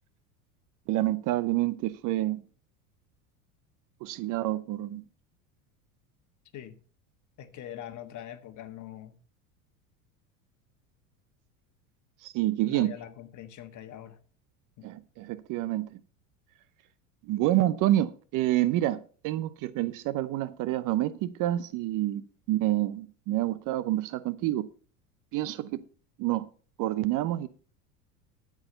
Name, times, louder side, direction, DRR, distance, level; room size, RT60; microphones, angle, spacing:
voice 1, 0.9-2.4 4.0-5.0 12.2-12.9 14.8-16.0 17.2-24.7 25.3-25.8 26.2-26.4 26.8-27.5, right 15 dB, 50° right, 0.8 m, -28 dB
voice 2, 7.4-9.2 12.6-14.2 14.8-14.9, left 11 dB, 45° left, 1.5 m, -43 dB
13.0 x 4.9 x 5.5 m
hypercardioid pair, 90°, 41 cm